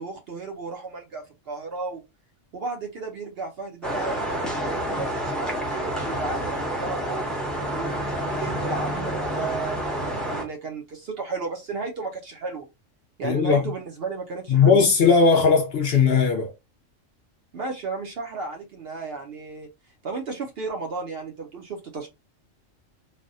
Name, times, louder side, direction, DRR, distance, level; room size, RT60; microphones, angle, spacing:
voice 1, 0.0-2.0 2.5-7.2 7.7-12.7 13.2-14.8 17.5-19.7 20.0-22.1, right 4 dB, 60° right, 0.8 m, -34 dB
sound 1, 3.8-10.4, right 1 dB, ahead, 0.6 m, -28 dB
voice 2, 13.2-13.6 14.5-16.5, left 5 dB, 60° left, 0.7 m, -18 dB
3.3 x 2.1 x 2.5 m
omnidirectional pair, 1.3 m